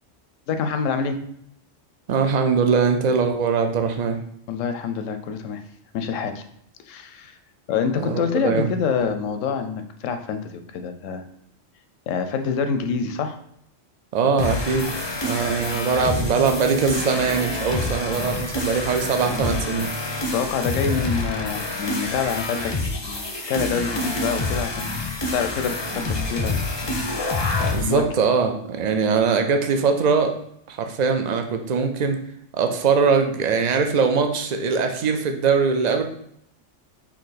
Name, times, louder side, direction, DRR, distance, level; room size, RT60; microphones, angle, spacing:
voice 1, 0.5-1.2 4.5-5.6 5.9-6.4 6.9-7.3 7.7-11.2 12.1-13.4 20.3-22.8 23.0-26.9 27.6-28.0, left 6 dB, 90° left, 7 dB, 0.9 m, -26 dB
voice 2, 2.1-4.2 8.0-8.7 14.1-15.0 15.2-19.9 27.7-30.4 30.7-32.2 32.5-36.0, right 5 dB, 60° right, 6 dB, 0.4 m, -21 dB
sound 1, 14.4-27.9, left 2 dB, 35° left, 0.4 m, -27 dB
4.6 x 2.8 x 4.0 m, 0.71 s
omnidirectional pair, 1.3 m